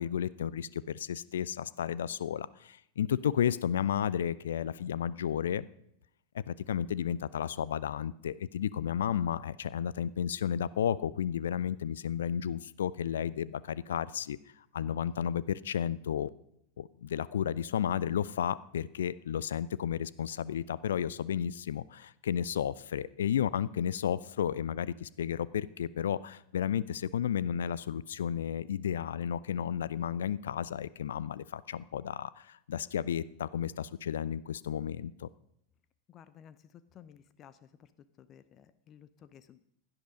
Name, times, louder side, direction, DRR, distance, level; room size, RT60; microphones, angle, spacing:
voice 1, 0.0-5.7 6.5-14.4 14.7-16.3 16.8-35.3, left 9 dB, 65° left, 20 dB, 0.4 m, -32 dB
voice 2, 36.1-37.9 38.2-39.6, left 9 dB, 30° left, 14 dB, 0.7 m, -55 dB
16.5 x 10.5 x 5.2 m, 0.74 s
figure-of-eight pair, 90°, 0 cm